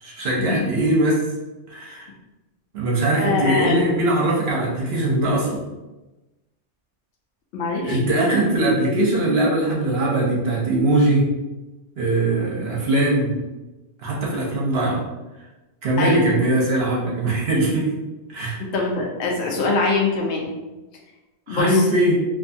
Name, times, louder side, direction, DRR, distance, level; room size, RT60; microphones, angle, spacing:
voice 1, 0.0-1.2 1.7-2.0 2.7-5.6 7.8-11.3 12.0-13.4 14.0-15.0 15.8-17.9 18.3-18.6 21.5-22.2, right 1 dB, 60° right, -3 dB, 0.8 m, -21 dB
voice 2, 3.2-3.8 7.5-8.1 16.0-16.4 18.6-20.5 21.5-21.8, left 3 dB, 70° left, 0 dB, 0.8 m, -23 dB
2.6 x 2.3 x 2.6 m, 1.1 s
omnidirectional pair, 1.2 m